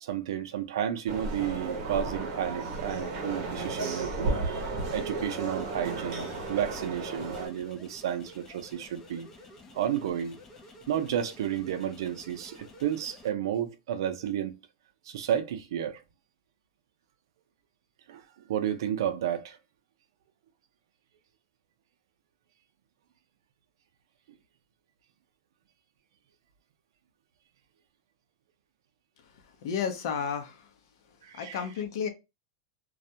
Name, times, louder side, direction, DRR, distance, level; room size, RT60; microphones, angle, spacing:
voice 1, 0.0-9.3 9.7-10.4 10.9-14.5 15.1-16.0 18.1-18.2 18.5-19.6 31.2-31.6, right 10 dB, 75° right, 0.5 m, -32 dB
sound 1, 1.1-7.5, right 3 dB, 40° right, 0.8 m, -33 dB
sound 2, 5.5-13.3, left 1 dB, 20° left, 0.5 m, -51 dB
voice 2, 29.2-30.7 31.1-32.1, left 7 dB, 65° left, 0.6 m, -33 dB
2.3 x 2.1 x 2.7 m
supercardioid pair, 155°, 2 cm